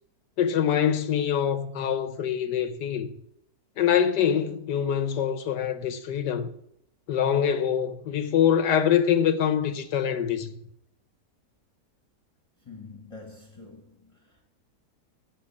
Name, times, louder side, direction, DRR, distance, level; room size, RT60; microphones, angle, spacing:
voice 1, 0.4-3.1 3.8-6.5 7.1-10.5, left 8 dB, 90° left, 1.6 m, -24 dB
voice 2, 12.6-14.5, left 3 dB, 20° left, 1.5 m, -46 dB
15.5 x 5.4 x 7.2 m
omnidirectional pair, 1.8 m